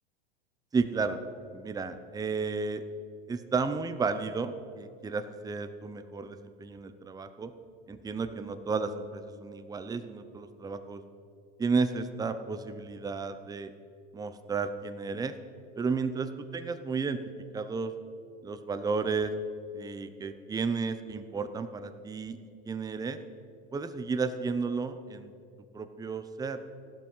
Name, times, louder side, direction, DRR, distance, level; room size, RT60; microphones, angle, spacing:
voice 1, 0.7-1.2 1.5-2.8 3.3-7.5 7.9-11.0 11.6-13.7 14.1-15.3 15.8-16.3 16.5-17.2 17.5-17.9 18.4-19.3 19.7-22.4 22.7-23.2 23.7-25.3 25.7-26.6, right 4 dB, 10° right, 10 dB, 0.8 m, -32 dB
14.5 x 12.0 x 5.6 m, 2.5 s
hypercardioid pair, 115°, 30 cm